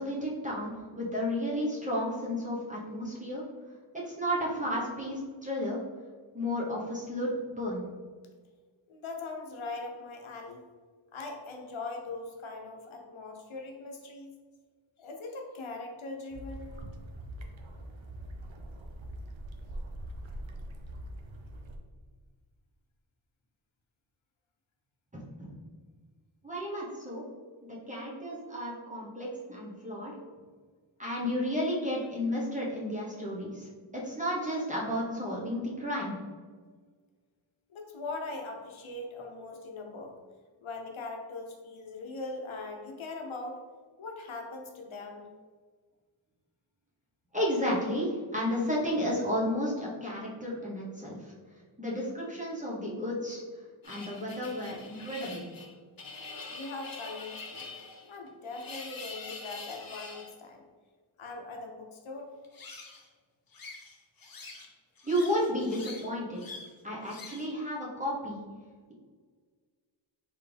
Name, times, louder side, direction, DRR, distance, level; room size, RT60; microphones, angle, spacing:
voice 1, 0.0-3.4 4.0-5.8 6.3-7.8 25.1-25.5 26.4-27.3 27.7-30.1 31.0-36.2 47.3-51.3 51.8-53.4 53.9-55.4 65.0-66.4 66.8-68.4, equal, 15° right, -5 dB, 0.9 m, -32 dB
voice 2, 8.9-10.6 11.1-14.3 15.0-16.8 37.7-40.1 40.6-43.6 44.0-45.3 56.5-57.7 58.1-60.7 61.2-62.3, left 3 dB, 85° left, 2 dB, 0.8 m, -41 dB
sound 1, 16.3-21.8, right 1 dB, 70° right, 0.7 m, -42 dB
sound 2, 53.8-60.3 62.4-63.1 63.5-64.7 65.0-66.0 66.4-66.7 67.0-67.5, left 4 dB, 45° left, 0.8 m, -45 dB
4.4 x 3.6 x 3.3 m, 1.5 s
wide cardioid pair, 110°, 47 cm